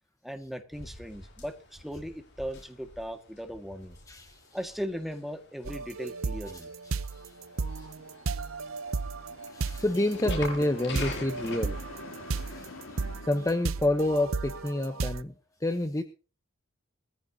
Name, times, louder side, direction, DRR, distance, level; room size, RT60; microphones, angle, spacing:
voice 1, 0.2-4.0 4.5-6.7, equal, ahead, 6 dB, 1.8 m, -38 dB
sound 1, 0.7-11.6, left 2 dB, 60° left, 6.5 m, -44 dB
voice 2, 4.1-4.4 6.8-7.3 7.8-7.9 9.5-11.8 12.4-15.3 15.6-16.0, left 1 dB, 15° left, 8 dB, 0.9 m, -29 dB
sound 2, 5.7-15.2, right 4 dB, 85° right, 0.8 m, -34 dB
sound 3, 7.0-14.4, left 3 dB, 80° left, 3.7 m, -48 dB
21.0 x 15.0 x 2.8 m, 0.35 s
head